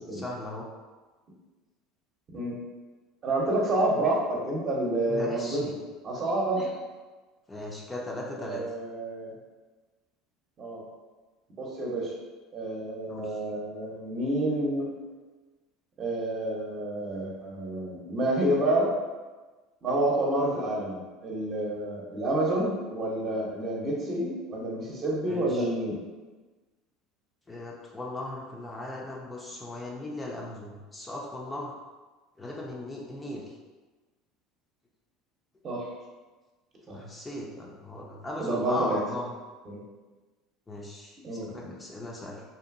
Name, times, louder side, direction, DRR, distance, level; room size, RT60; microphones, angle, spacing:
voice 1, 0.1-0.7 5.1-5.7 6.5-6.7 7.5-8.6 13.1-13.4 25.3-25.7 27.5-31.7 32.4-33.5 36.9-39.3 40.7-42.4, left 1 dB, 20° left, -3 dB, 0.5 m, -38 dB
voice 2, 3.2-5.6 6.0-6.6 8.4-9.3 10.6-10.8 11.6-12.1 12.5-14.9 16.0-18.9 19.8-26.0 35.6-35.9 36.9-37.0 38.4-39.0 39.7-39.8 41.2-41.7, right 1 dB, 40° right, -3 dB, 0.8 m, -29 dB
2.7 x 2.5 x 2.5 m, 1.3 s
hypercardioid pair, 80°, 0 cm